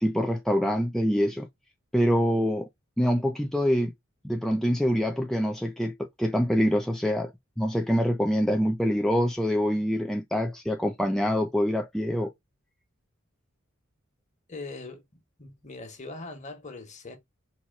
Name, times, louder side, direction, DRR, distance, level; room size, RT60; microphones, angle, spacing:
voice 1, 0.0-1.5 1.9-2.7 3.0-3.9 4.2-5.9 6.2-7.3 7.6-12.3, equal, ahead, 0.4 m, -25 dB
voice 2, 14.5-17.2, left 3 dB, 35° left, 1.4 m, -41 dB
4.2 x 3.0 x 4.1 m
head